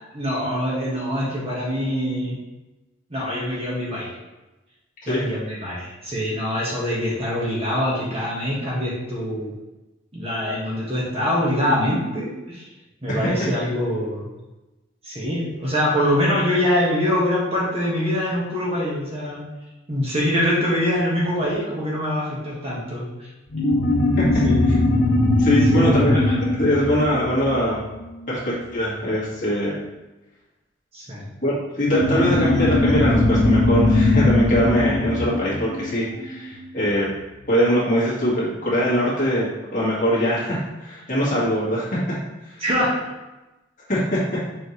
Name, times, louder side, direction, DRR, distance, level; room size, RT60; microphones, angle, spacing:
voice 1, 0.1-2.3 3.1-4.1 5.1-9.5 10.1-12.7 13.0-14.3 15.0-19.4 19.9-23.3 24.4-24.6 25.7-26.1 30.9-31.2 42.6-42.9, left 1 dB, 30° right, -6 dB, 1.6 m, -24 dB
voice 2, 13.1-13.5 24.2-24.3 24.7-24.8 25.4-27.8 28.3-29.8 31.4-37.1 37.5-42.0 42.4-42.6 43.9-44.2, equal, 40° left, -7 dB, 2.1 m, -22 dB
sound 1, 23.5-28.5 31.8-36.8, left 2 dB, 80° left, 1.0 m, -20 dB
7.0 x 4.4 x 3.3 m, 1.1 s
head